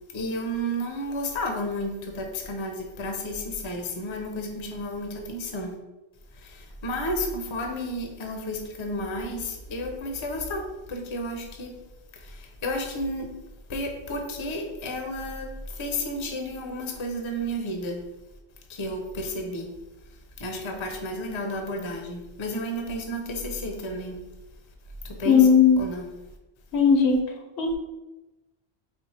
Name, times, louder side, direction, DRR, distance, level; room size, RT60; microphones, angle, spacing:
voice 1, 0.1-5.7 6.3-11.7 12.1-13.3 13.7-18.0 18.7-19.7 20.4-24.2 25.0-25.5 25.8-26.1, equal, 35° left, 2 dB, 0.5 m, -32 dB
voice 2, 25.2-25.9 26.7-27.8, left 6 dB, 80° left, 3 dB, 0.9 m, -18 dB
4.4 x 2.1 x 4.1 m, 1.1 s
omnidirectional pair, 1.1 m